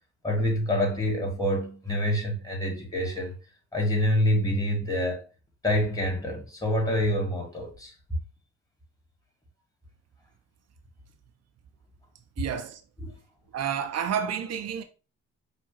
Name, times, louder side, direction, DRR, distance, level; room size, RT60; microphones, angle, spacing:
voice 1, 0.2-3.3 3.7-5.2 5.6-7.9 13.0-13.1, equal, 10° left, 2.2 m, -26 dB
voice 2, 12.4-12.8 13.5-14.8, right 8 dB, 55° right, 0.7 m, -30 dB
5.0 x 2.6 x 4.0 m
supercardioid pair, 70°, 30 cm